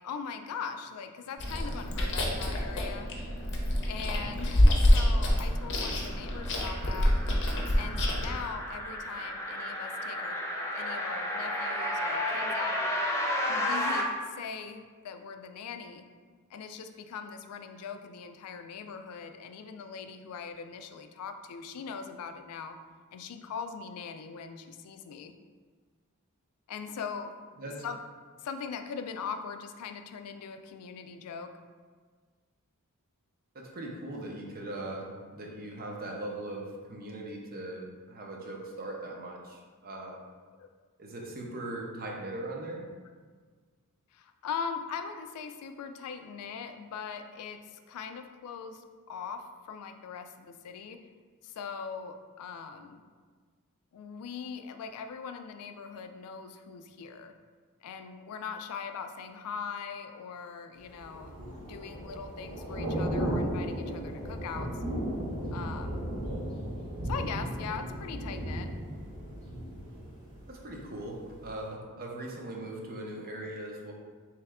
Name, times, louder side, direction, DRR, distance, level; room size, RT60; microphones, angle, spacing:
voice 1, 0.0-3.1 3.9-7.1 7.7-10.4 10.7-12.8 13.5-16.1 16.5-22.8 23.1-25.3 26.7-27.3 27.6-28.0 28.4-31.5 40.6-40.7 44.1-51.0 51.4-53.0 53.9-57.3 57.8-64.7 65.5-66.1 67.0-68.7, left 6 dB, 85° left, 7 dB, 0.3 m, -41 dB
Chewing mastication, 1.4-8.3, left 1 dB, 55° left, 0.6 m, -26 dB
sound 1, 5.7-14.0, left 1 dB, 10° left, 0.4 m, -33 dB
voice 2, 33.5-40.2 41.0-42.8 70.5-73.9, right 1 dB, 45° right, -1 dB, 0.6 m, -40 dB
Thunder / Rain, 60.9-70.9 71.2-71.5, right 1 dB, 60° right, 1.2 m, -35 dB
3.4 x 3.1 x 3.5 m, 1.5 s
head